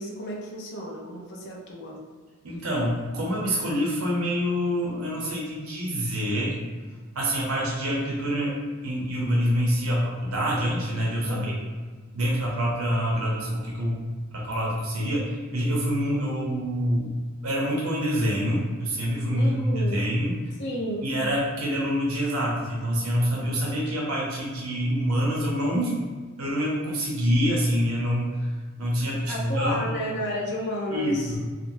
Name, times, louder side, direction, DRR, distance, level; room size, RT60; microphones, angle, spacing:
voice 1, 0.0-2.0 11.3-11.6 19.3-20.1 20.6-21.1 29.3-31.3, equal, 55° left, -1 dB, 0.6 m, -32 dB
voice 2, 2.4-6.6 7.1-8.6 8.8-11.5 12.1-14.0 14.3-17.1 17.4-20.3 21.0-25.9 26.4-28.4 28.8-29.8 30.9-31.4, equal, 90° right, -4 dB, 0.7 m, -26 dB
3.0 x 2.4 x 2.5 m, 1.4 s
head